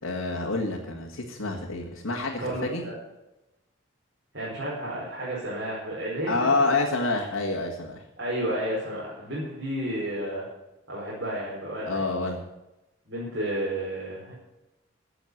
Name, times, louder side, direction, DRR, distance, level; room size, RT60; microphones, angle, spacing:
voice 1, 0.0-2.8 6.3-8.0 11.8-12.4, left 3 dB, 90° left, -3 dB, 2.0 m, -27 dB
voice 2, 2.4-2.9 4.3-6.7 8.2-10.5 10.9-12.0 13.1-14.3, right 1 dB, 55° right, -6 dB, 4.7 m, -32 dB
15.5 x 7.0 x 8.2 m, 0.96 s
head